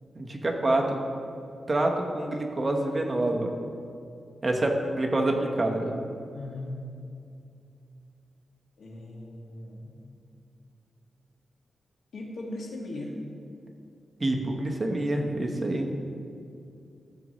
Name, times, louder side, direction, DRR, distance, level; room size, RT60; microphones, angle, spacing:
voice 1, 0.1-1.0 1.7-3.5 4.4-6.0 14.2-15.9, right 1 dB, 25° right, 1 dB, 1.0 m, -27 dB
voice 2, 6.3-6.8 8.8-10.2 12.1-13.2, left 2 dB, 85° left, -2 dB, 1.8 m, -38 dB
14.5 x 7.5 x 3.1 m, 2.5 s
wide cardioid pair, 115°, 0 cm